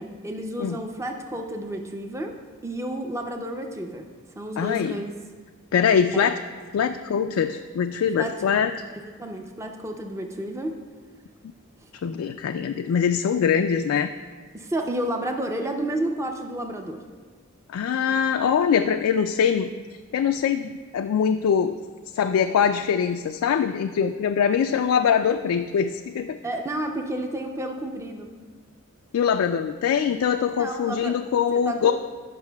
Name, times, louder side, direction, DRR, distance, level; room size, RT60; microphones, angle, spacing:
voice 1, 0.0-2.4 2.6-5.1 6.1-6.3 8.2-8.4 8.9-10.8 11.8-11.9 14.5-17.0 26.4-28.3 30.5-31.2 31.5-31.9, right 1 dB, 15° right, 3 dB, 0.5 m, -31 dB
voice 2, 4.6-5.0 5.7-6.4 6.7-8.7 12.0-14.1 17.7-19.7 20.1-21.7 22.1-26.4 29.1-31.9, left 7 dB, 80° left, 7 dB, 0.3 m, -23 dB
16.0 x 5.5 x 2.2 m, 1.5 s
head